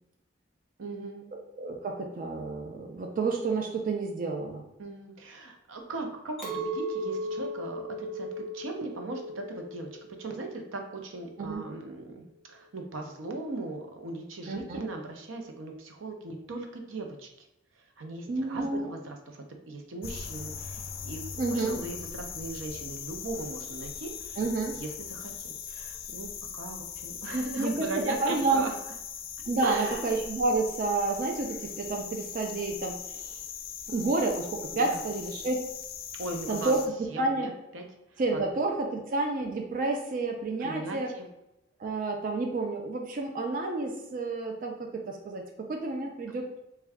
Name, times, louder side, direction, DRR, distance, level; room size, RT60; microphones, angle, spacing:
voice 1, 0.8-1.3 4.8-9.9 10.2-17.5 17.8-21.2 21.5-24.4 24.7-28.7 29.6-30.1 34.7-35.0 36.2-36.7 37.1-37.8 38.1-38.4 40.6-41.3, right 2 dB, 85° right, 3 dB, 0.6 m, -39 dB
voice 2, 1.6-4.6 11.4-11.6 14.5-14.8 18.3-18.9 21.4-21.8 24.4-24.8 27.3-28.6 29.5-33.4 33.9-35.6 36.5-36.8 37.2-37.5 38.2-41.1 41.8-46.6, right 3 dB, 45° right, 2 dB, 0.4 m, -30 dB
Chink clink, 6.4-11.8, right 1 dB, ahead, 0.9 m, -37 dB
sound 1, 20.0-36.9, left 7 dB, 50° left, 0.4 m, -40 dB
3.5 x 2.2 x 3.4 m, 0.88 s
head